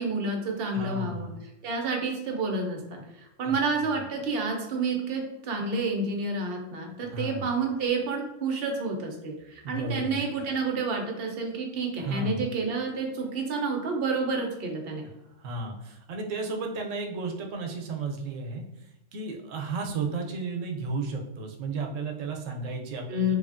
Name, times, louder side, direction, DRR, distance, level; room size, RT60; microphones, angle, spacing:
voice 1, 0.0-1.3 1.6-15.1 23.1-23.4, right 3 dB, 60° right, 2 dB, 0.7 m, -29 dB
voice 2, 0.7-1.4 3.4-3.5 3.8-4.0 7.1-7.5 9.6-10.4 12.0-12.4 15.4-18.6 19.1-23.4, right 3 dB, 90° right, 2 dB, 0.9 m, -33 dB
3.2 x 2.4 x 2.4 m, 0.90 s
omnidirectional pair, 1.3 m